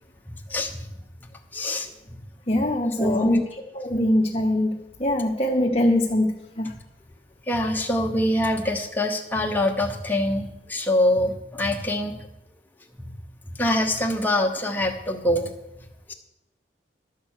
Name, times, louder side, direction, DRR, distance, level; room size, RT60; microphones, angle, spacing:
voice 1, 0.3-0.9 1.5-2.2 3.0-3.4 7.5-12.2 13.0-13.1 13.6-15.5 16.1-16.2, left 1 dB, 10° left, 2 dB, 1.1 m, -24 dB
voice 2, 2.5-3.4 3.7-6.7, left 1 dB, 35° left, 0 dB, 0.7 m, -23 dB
12.0 x 7.9 x 6.4 m, 0.92 s
head